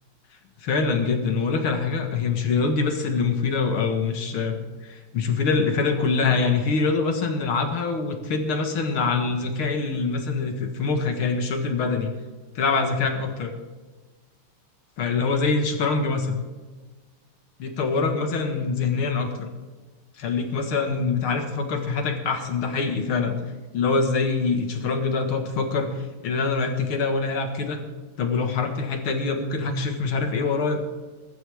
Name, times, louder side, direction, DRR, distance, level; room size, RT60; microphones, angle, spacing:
voice 1, 0.6-12.1 12.6-13.5 15.0-16.4 17.6-19.5 20.2-23.4 23.7-27.8 28.2-30.8, left 4 dB, 75° left, 5 dB, 2.5 m, -24 dB
22.0 x 12.5 x 3.5 m, 1.3 s
omnidirectional pair, 2.3 m